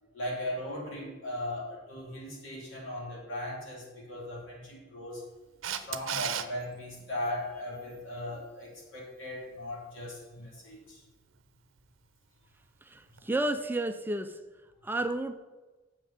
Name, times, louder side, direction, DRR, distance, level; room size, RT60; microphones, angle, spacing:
voice 1, 0.0-5.3 5.7-11.1, left 1 dB, 75° left, -3 dB, 3.2 m, -38 dB
Camera, 5.6-6.5 13.2-13.3, right 9 dB, 80° right, 0.6 m, -33 dB
voice 2, 12.9-14.4 14.8-15.4, right 1 dB, 10° right, 8 dB, 0.4 m, -31 dB
7.3 x 5.7 x 7.1 m, 1.2 s
head